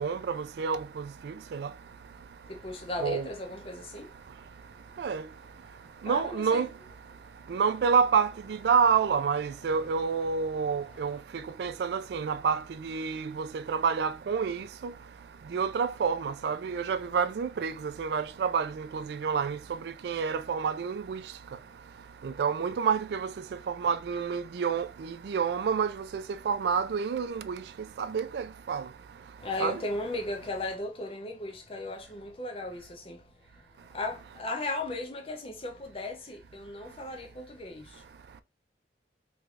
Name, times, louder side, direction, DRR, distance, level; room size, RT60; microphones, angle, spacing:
voice 1, 0.0-1.7 3.0-3.3 5.0-5.2 6.0-6.7 7.5-8.3 8.6-11.2 11.6-14.9 15.5-19.6 20.0-21.2 22.2-23.3 23.8-27.6 28.0-28.8 29.6-29.8, right 6 dB, 65° right, 0.3 m, -28 dB
voice 2, 2.5-4.1 6.0-6.7 10.7-11.2 29.4-33.7 33.9-38.1, left 2 dB, 30° left, 0.6 m, -37 dB
3.3 x 3.2 x 2.4 m
head